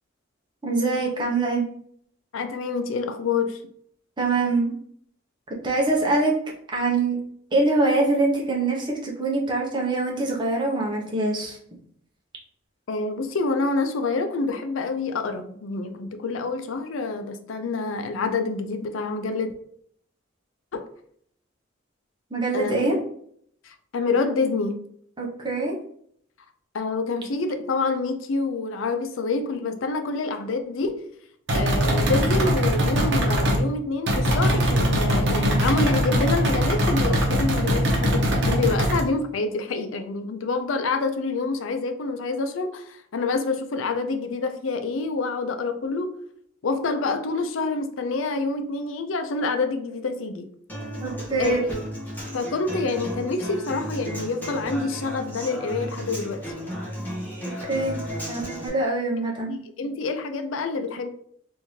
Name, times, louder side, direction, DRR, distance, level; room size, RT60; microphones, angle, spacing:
voice 1, 0.6-1.6 4.2-4.7 5.6-6.3 6.7-7.2 7.5-11.6 22.3-23.0 25.2-25.8 51.0-51.6 57.7-59.6, right 2 dB, 25° right, 0.8 m, -24 dB
voice 2, 2.3-3.6 12.9-19.5 20.7-20.8 22.5-22.9 23.6-24.8 26.7-31.0 31.5-46.1 46.6-50.5 51.4-51.8 52.3-56.4 59.5-61.1, left 3 dB, 75° left, 0.5 m, -27 dB
sound 1, 31.5-33.6 34.1-39.0, equal, 65° right, 0.9 m, -21 dB
Human voice / Acoustic guitar, 50.7-58.7, equal, 10° left, 1.2 m, -34 dB
3.5 x 2.6 x 3.1 m
head